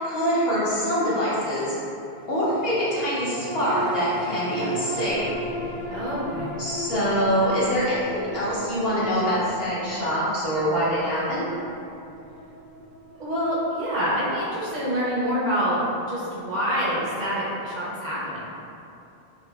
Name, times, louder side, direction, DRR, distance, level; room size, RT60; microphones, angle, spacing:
voice 1, 0.0-1.7 2.3-5.3 6.6-11.5, equal, 70° left, -9 dB, 1.1 m, -24 dB
sound 1, 2.2-16.9 17.3-17.4, right 1 dB, 85° left, 0.9 m, -37 dB
voice 2, 5.9-6.6 13.2-15.8 16.1-18.5, equal, 50° right, -8 dB, 0.7 m, -26 dB
3.8 x 2.6 x 2.3 m, 2.7 s
omnidirectional pair, 1.1 m